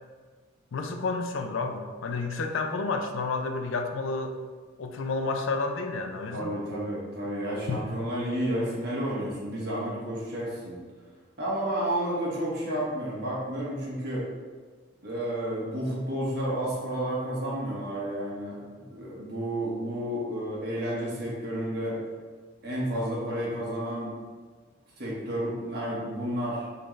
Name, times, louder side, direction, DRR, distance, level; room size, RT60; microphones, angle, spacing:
voice 1, 0.7-4.4 4.8-6.5 7.7-7.8, left 3 dB, 90° left, 5 dB, 0.5 m, -30 dB
voice 2, 6.3-10.8 11.4-14.2 15.0-22.0 22.6-24.1 25.0-26.6, right 1 dB, 55° right, -6 dB, 1.4 m, -31 dB
4.0 x 3.8 x 3.2 m, 1.5 s
head